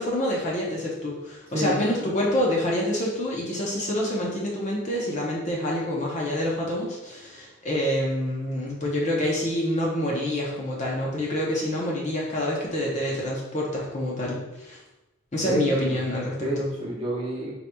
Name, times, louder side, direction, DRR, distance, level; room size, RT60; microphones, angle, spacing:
voice 1, 0.0-14.8 15.3-16.7, left 1 dB, 35° left, -3 dB, 0.7 m, -27 dB
voice 2, 15.4-16.0 16.4-17.5, right 1 dB, 30° right, -5 dB, 1.0 m, -29 dB
4.2 x 3.9 x 2.3 m, 0.97 s
head